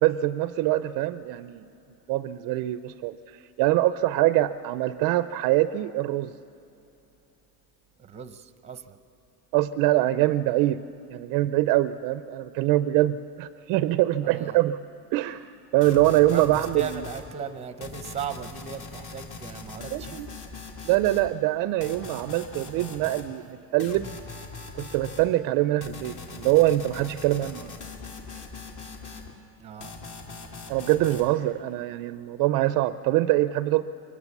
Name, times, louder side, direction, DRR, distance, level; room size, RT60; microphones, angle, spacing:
voice 1, 0.0-1.7 2.1-6.3 9.5-10.8 11.1-14.8 15.1-17.0 19.9-20.3 20.8-24.2 24.8-27.7 30.7-33.8, right 15 dB, 50° right, 13 dB, 0.5 m, -24 dB
voice 2, 8.0-9.0 14.2-14.6 16.2-20.2 29.6-30.0, right 7 dB, 15° right, 11 dB, 0.7 m, -37 dB
sound 1, 15.8-17.3 17.8-21.3 21.8-23.3 23.8-25.3 25.8-29.3 29.8-31.3, left 4 dB, 40° left, 2.4 m, -41 dB
23.0 x 19.5 x 7.2 m, 2.8 s
cardioid pair, 145°, 45 cm